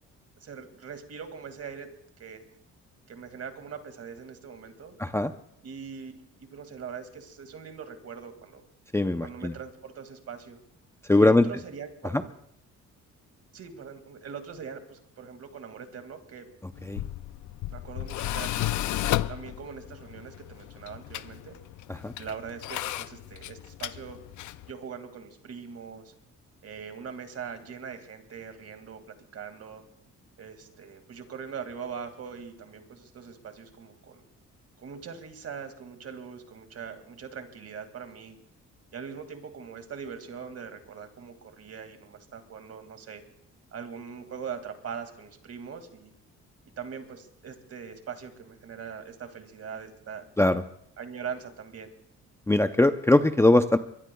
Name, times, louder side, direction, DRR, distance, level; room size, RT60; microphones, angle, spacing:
voice 1, 0.4-1.9 2.2-2.5 3.1-5.0 5.6-6.1 6.4-8.6 9.2-10.6 11.2-12.3 13.5-16.5 17.7-18.8 19.3-21.6 22.2-24.2 24.7-26.1 26.6-29.0 29.3-29.8 30.4-34.2 34.8-38.4 38.9-43.2 43.7-46.1 46.8-50.3 51.0-51.9, right 6 dB, 55° right, 7 dB, 2.2 m, -41 dB
voice 2, 5.0-5.3 8.9-9.5 11.1-11.5 12.1-12.2 16.8-17.0 21.9-22.1 50.4-50.6 52.5-53.8, left 2 dB, 10° left, 9 dB, 0.6 m, -21 dB
Tools, 16.7-24.7, left 14 dB, 75° left, 0.6 m, -33 dB
23.5 x 21.5 x 2.3 m, 0.71 s
cardioid pair, 90°, 30 cm